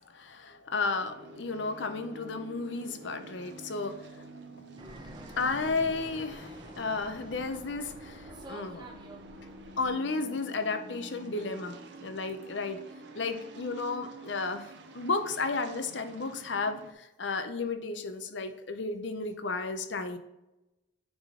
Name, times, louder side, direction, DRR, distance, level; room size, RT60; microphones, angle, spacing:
voice 1, 0.1-4.3 4.6-4.7 5.4-8.9 9.8-11.8 12.0-12.8 13.1-20.2, left 3 dB, 70° left, 8 dB, 0.7 m, -33 dB
sound 1, 1.0-16.9, right 2 dB, 70° right, 0.7 m, -48 dB
Fixed-wing aircraft airplane, 4.8-9.9, right 2 dB, 25° right, 1.0 m, -48 dB
9.7 x 3.7 x 3.7 m, 0.94 s
head